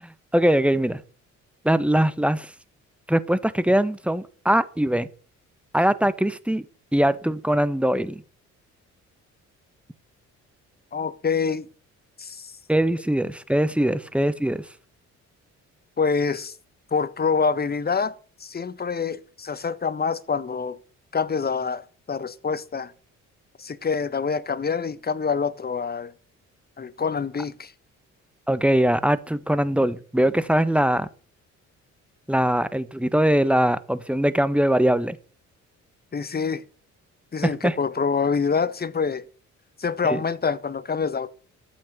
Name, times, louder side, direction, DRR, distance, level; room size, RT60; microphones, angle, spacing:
voice 1, 0.3-1.0 1.6-2.5 3.1-5.1 5.7-6.6 6.9-8.2 12.7-14.6 28.5-31.1 32.3-35.2 37.4-37.8 40.0-40.2, right 1 dB, 5° right, 1.3 m, -21 dB
voice 2, 10.9-11.6 12.2-12.5 16.0-16.5 16.9-18.1 18.4-20.8 21.1-22.9 23.6-26.1 26.8-27.7 36.1-36.6 37.3-39.2 39.8-41.3, left 5 dB, 30° left, 1.5 m, -26 dB
13.5 x 8.7 x 8.3 m
cardioid pair, 90°, 30 cm